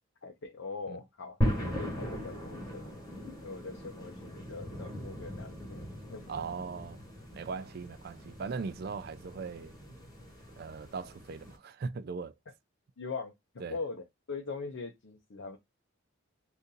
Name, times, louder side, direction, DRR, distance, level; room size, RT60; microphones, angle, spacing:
voice 1, 0.2-1.4 1.7-2.8 3.4-6.2 13.0-15.6, left 4 dB, 65° left, 0.6 m, -42 dB
sound 1, 1.4-11.6, left 1 dB, 20° left, 1.2 m, -38 dB
voice 2, 6.3-7.0 7.3-9.7 10.6-12.3 13.6-13.8, right 5 dB, 50° right, 0.3 m, -39 dB
2.7 x 2.5 x 3.7 m
head